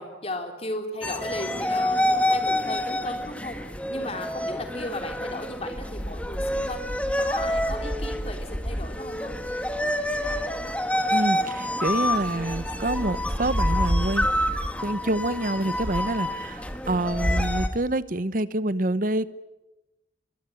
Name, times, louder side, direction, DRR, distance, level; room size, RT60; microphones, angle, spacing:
voice 1, 0.0-3.6 3.9-9.3, left 1 dB, 30° left, 5 dB, 3.5 m, -36 dB
sound 1, 1.0-17.7, left 1 dB, 5° left, 1.6 m, -27 dB
voice 2, 11.1-14.3 14.8-19.3, right 1 dB, 45° right, 16 dB, 0.9 m, -27 dB
24.0 x 23.0 x 9.4 m, 1.0 s
head